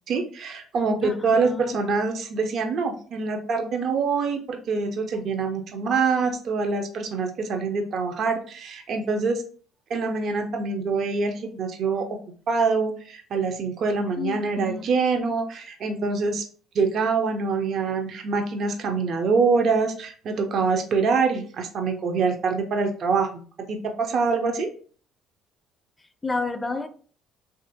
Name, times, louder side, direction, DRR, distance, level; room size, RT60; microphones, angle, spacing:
voice 1, 0.1-9.4 9.9-12.1 12.5-16.4 16.7-23.4 23.7-24.7, right 4 dB, 60° right, 0.4 m, -25 dB
voice 2, 1.0-1.8 14.2-14.8 26.2-26.9, left 3 dB, 15° left, 0.4 m, -30 dB
2.9 x 2.5 x 2.6 m
supercardioid pair, 65°, 0 cm